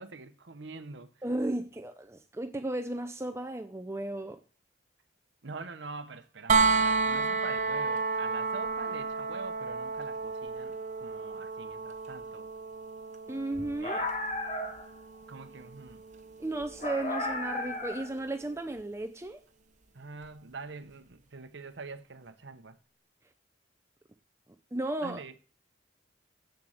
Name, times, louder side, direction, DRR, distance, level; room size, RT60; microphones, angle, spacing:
voice 1, 0.0-1.1 5.4-12.5 13.8-14.1 15.3-16.0 19.9-22.8 25.0-25.3, right 4 dB, 70° right, 0.8 m, -45 dB
voice 2, 1.2-4.4 13.3-14.0 16.4-19.4 24.7-25.2, right 2 dB, 15° right, 0.5 m, -34 dB
sound 1, 6.5-18.3 20.2-20.3, right 4 dB, 40° right, 0.9 m, -32 dB
sound 2, 13.5-14.9 16.8-18.2, left 2 dB, 40° left, 1.3 m, -34 dB
7.7 x 7.4 x 7.8 m
head